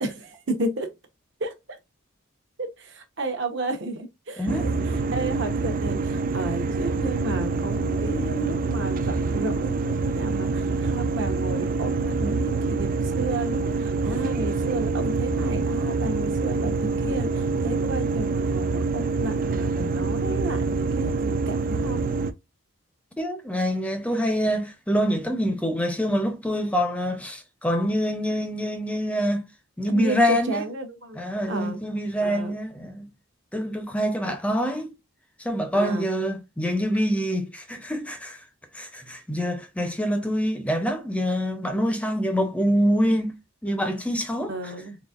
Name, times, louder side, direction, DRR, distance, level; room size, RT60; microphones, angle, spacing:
voice 1, 0.0-0.9 1.4-1.5 2.6-4.7 5.1-22.1 29.9-31.2 31.5-31.8 32.2-32.5 34.2-34.3 35.7-36.1 44.5-45.0, right 2 dB, 60° right, 0.9 m, -32 dB
voice 2, 4.4-4.7 23.2-29.5 29.8-30.6 31.1-33.1 33.5-34.9 35.4-38.4 38.7-44.7, equal, 5° left, 0.6 m, -25 dB
sound 1, 4.5-22.3, right 4 dB, 40° right, 0.3 m, -26 dB
4.0 x 3.3 x 2.4 m
head